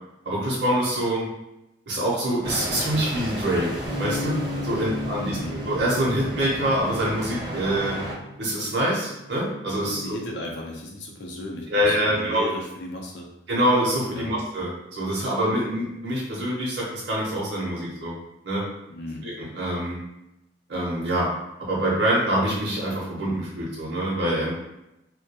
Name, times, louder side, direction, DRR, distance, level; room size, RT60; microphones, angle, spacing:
voice 1, 0.2-1.2 1.9-3.7 4.0-4.4 4.6-8.0 8.4-10.2 11.7-12.4 13.5-18.1 18.4-18.6 19.2-20.0 20.7-21.3 21.6-24.5, right 1 dB, 65° right, -6 dB, 0.6 m, -25 dB
sound 1, 2.4-8.2, equal, 25° right, 0.5 m, -33 dB
sound 2, 3.9-10.1, left 1 dB, 20° left, 0.5 m, -36 dB
voice 2, 5.2-5.6 9.9-13.3 14.1-14.4 18.9-19.3, left 1 dB, 70° left, 0 dB, 0.5 m, -36 dB
2.2 x 2.2 x 2.8 m, 0.90 s
head